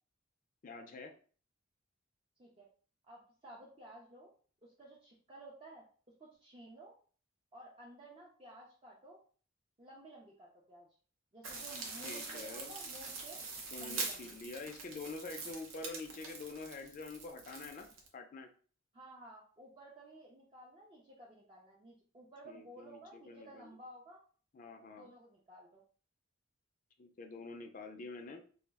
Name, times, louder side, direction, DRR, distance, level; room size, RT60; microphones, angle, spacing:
voice 1, 0.6-1.1 12.0-12.7 13.7-17.9 18.1-18.5 22.4-23.7 24.5-25.1 27.0-28.4, left 3 dB, 40° left, 5 dB, 0.4 m, -46 dB
voice 2, 3.0-4.3 4.6-5.9 6.2-6.9 7.5-9.2 9.8-10.9 11.3-13.4 13.8-14.4 18.9-24.2 24.9-25.8, right 1 dB, 25° right, -4 dB, 0.4 m, -54 dB
sound 1, 11.4-18.1, right 4 dB, 85° right, 0.6 m, -44 dB
2.3 x 2.0 x 3.4 m, 0.43 s
head